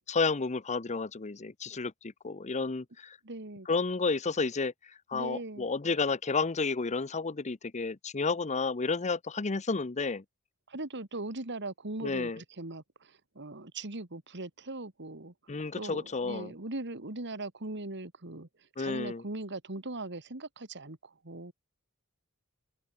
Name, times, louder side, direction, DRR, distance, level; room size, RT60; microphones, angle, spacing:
voice 1, 0.1-1.9 2.2-3.2 3.7-4.7 5.1-10.2 12.0-12.4 15.5-16.5 18.8-19.2, left 4 dB, 30° left, 0.7 m, -31 dB
voice 2, 3.2-3.7 5.1-5.7 10.7-15.3 15.7-18.5 18.8-21.5, right 2 dB, 55° right, 2.4 m, -40 dB
head